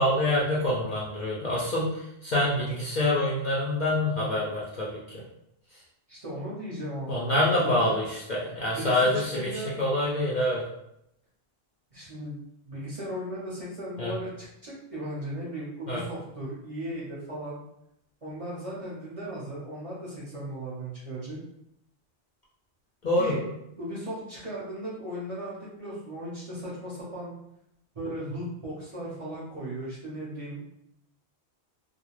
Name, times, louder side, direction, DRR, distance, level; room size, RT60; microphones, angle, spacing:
voice 1, 0.0-5.2 7.1-10.6 14.0-14.2 15.9-16.0 23.0-23.3, left 1 dB, 55° left, -6 dB, 0.6 m, -26 dB
voice 2, 6.1-8.0 8.7-9.7 11.9-12.4 12.6-17.6 18.2-21.4 23.1-23.5 23.8-27.3 27.9-30.6, right 1 dB, 35° right, -7 dB, 0.7 m, -37 dB
2.4 x 2.1 x 3.0 m, 0.80 s
omnidirectional pair, 1.1 m